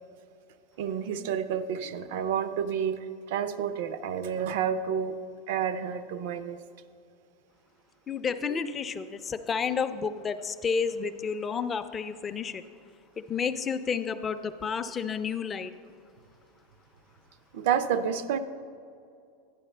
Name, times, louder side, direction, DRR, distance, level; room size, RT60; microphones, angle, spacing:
voice 1, 0.8-5.2 5.5-6.6 17.5-18.4, right 8 dB, 70° right, 12 dB, 0.5 m, -29 dB
voice 2, 8.1-12.6 13.2-15.7, left 6 dB, 20° left, 10 dB, 0.4 m, -31 dB
11.5 x 10.0 x 3.3 m, 2.4 s
supercardioid pair, 135°, 0 cm